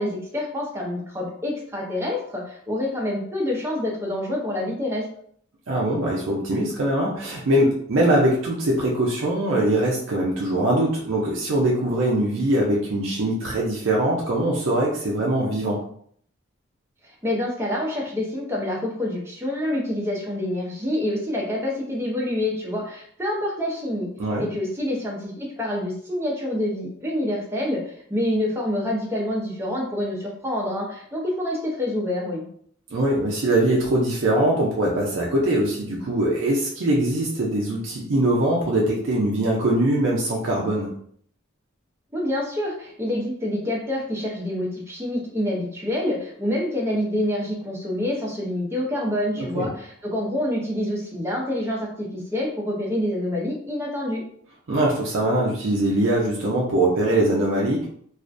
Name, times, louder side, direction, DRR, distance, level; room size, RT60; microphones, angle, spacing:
voice 1, 0.0-5.1 17.0-24.1 24.4-32.4 42.1-54.2, left 1 dB, 10° right, -3 dB, 0.5 m, -27 dB
voice 2, 5.7-15.8 24.2-24.4 32.9-40.9 49.4-49.7 54.7-57.9, right 1 dB, 65° right, -3 dB, 0.4 m, -22 dB
2.4 x 2.1 x 2.5 m, 0.62 s
head